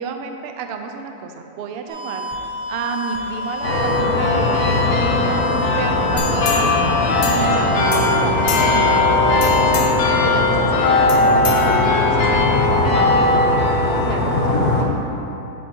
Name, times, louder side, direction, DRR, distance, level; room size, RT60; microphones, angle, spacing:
voice 1, 0.0-2.2 2.7-6.7 7.3-9.9 10.2-14.9, right 5 dB, 75° right, 5 dB, 0.5 m, -30 dB
sound 1, 1.9-9.8, left 1 dB, 35° right, 1.4 m, -29 dB
sound 2, 3.6-14.8, left 2 dB, 85° left, 1.4 m, -17 dB
sound 3, 6.2-7.6 7.9-9.0 9.4-10.2 11.1-12.2 12.7-12.8, left 8 dB, 70° left, 0.9 m, -30 dB
7.5 x 6.9 x 2.8 m, 2.8 s
omnidirectional pair, 1.6 m